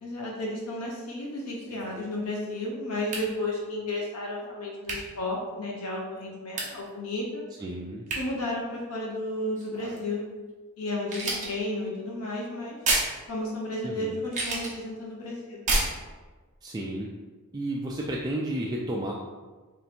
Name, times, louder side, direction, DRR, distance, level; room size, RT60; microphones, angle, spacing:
voice 1, 0.0-7.4 8.1-10.3 10.8-12.8 13.3-15.7, left 1 dB, 75° left, -3 dB, 0.7 m, -33 dB
sound 1, 1.6-2.1 3.1-3.3 4.8-5.1 6.6-6.8 8.1-8.2 9.6-10.1 11.1-11.5 12.9-13.2 14.2-14.7 15.7-15.9, right 2 dB, 35° right, 0.9 m, -29 dB
voice 2, 7.6-8.0 13.8-14.2 16.6-17.1 17.5-19.1, right 1 dB, 20° right, -3 dB, 0.3 m, -32 dB
3.2 x 2.8 x 4.2 m, 1.3 s
head